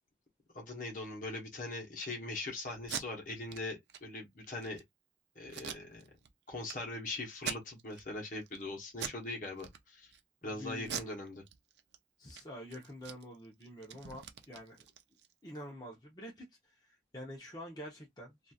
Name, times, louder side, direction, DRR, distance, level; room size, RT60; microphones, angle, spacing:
voice 1, 0.5-4.8 5.3-6.0 6.5-10.1 10.4-11.4, left 2 dB, 45° left, 1.0 m, -41 dB
Packing tape duct tape, 2.8-3.0 3.5-3.6 3.9-4.0 4.4-4.8 5.5-6.3 6.7-6.8 7.3-8.0 8.4-8.6 8.9-9.2 9.6-10.2 10.8-12.0 12.2-12.4 12.7-15.3, right 8 dB, 70° right, 0.5 m, -42 dB
voice 2, 10.5-11.2 12.2-14.8 15.4-16.5 16.8-18.5, equal, 20° left, 0.8 m, -47 dB
2.9 x 2.5 x 2.3 m
head